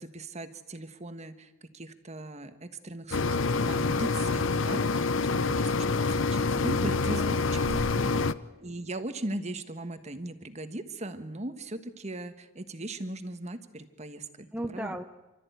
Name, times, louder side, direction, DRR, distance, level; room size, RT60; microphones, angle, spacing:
voice 1, 0.0-5.1 5.3-7.7 8.6-15.0, right 2 dB, 35° right, 9 dB, 1.4 m, -39 dB
sound 1, 3.1-8.3, left 4 dB, 70° left, 0.7 m, -27 dB
voice 2, 6.8-7.4 7.7-8.3 14.5-15.0, right 1 dB, 5° right, 5 dB, 0.7 m, -36 dB
28.5 x 13.5 x 9.4 m, 1.2 s
head